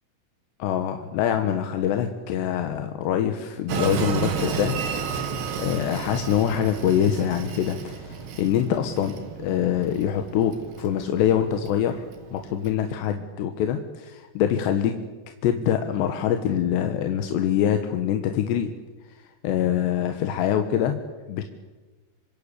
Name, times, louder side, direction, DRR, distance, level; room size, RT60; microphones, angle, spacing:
voice 1, 0.6-4.8 5.6-12.1 12.3-14.9 15.4-18.7 19.4-21.0 21.3-21.4, left 9 dB, 70° left, 6 dB, 3.1 m, -24 dB
Train, 3.7-12.7, right 6 dB, 60° right, 4.2 m, -32 dB
26.5 x 25.0 x 8.4 m, 1.2 s
omnidirectional pair, 5.9 m